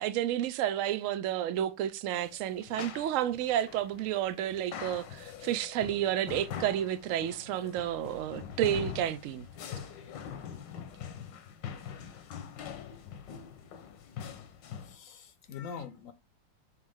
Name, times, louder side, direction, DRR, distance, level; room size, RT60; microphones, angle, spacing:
voice 1, 0.0-9.5, right 11 dB, 80° right, 0.7 m, -31 dB
sound 1, 2.1-15.0, left 8 dB, 80° left, 1.5 m, -43 dB
voice 2, 14.8-16.1, left 6 dB, 60° left, 0.9 m, -43 dB
9.6 x 3.2 x 3.6 m
omnidirectional pair, 2.0 m